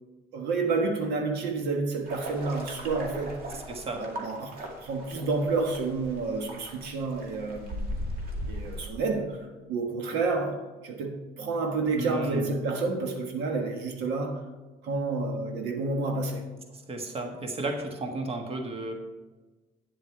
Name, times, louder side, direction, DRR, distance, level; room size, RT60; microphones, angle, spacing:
voice 1, 0.3-3.4 3.9-7.9 8.5-14.4 14.8-16.4, right 3 dB, 85° right, 3 dB, 1.5 m, -30 dB
sound 1, 2.1-8.9, equal, 60° right, 2.2 m, -38 dB
voice 2, 3.5-4.1 12.0-12.5 16.7-18.9, right 2 dB, 35° right, 4 dB, 1.5 m, -34 dB
9.5 x 7.6 x 4.6 m, 1.2 s
cardioid pair, 110°, 17 cm